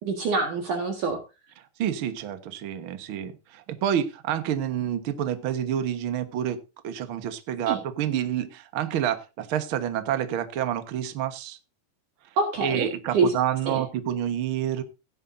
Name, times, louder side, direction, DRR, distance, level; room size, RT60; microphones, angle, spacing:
voice 1, 0.0-1.2 7.7-7.8 12.4-13.3 13.7-13.8, right 4 dB, 60° right, 4 dB, 3.0 m, -25 dB
voice 2, 1.8-6.6 6.8-11.6 12.6-14.8, right 10 dB, 85° right, 9 dB, 1.1 m, -28 dB
16.5 x 10.0 x 2.6 m, 0.28 s
omnidirectional pair, 4.4 m